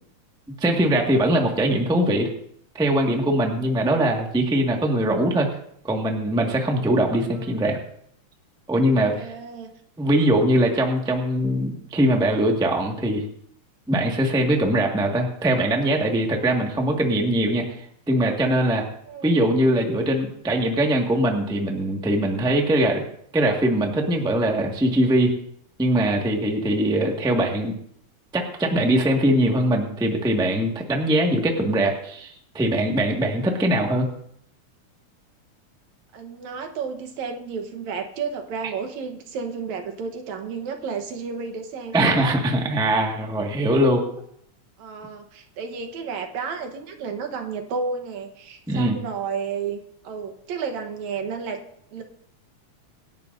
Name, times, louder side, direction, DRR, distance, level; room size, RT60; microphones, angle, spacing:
voice 1, 0.6-2.3 2.7-5.5 5.8-7.8 8.7-9.3 10.0-13.2 13.9-17.8 18.1-18.8 19.2-23.0 23.3-25.3 25.8-27.7 28.3-34.1 41.9-44.1 48.7-49.0, right 1 dB, 5° right, 1 dB, 0.8 m, -21 dB
voice 2, 7.3-7.7 9.2-9.7 19.1-19.4 36.1-42.4 44.8-51.6 51.9-52.0, right 5 dB, 75° right, 6 dB, 2.4 m, -32 dB
26.5 x 10.5 x 2.6 m, 0.68 s
omnidirectional pair, 3.4 m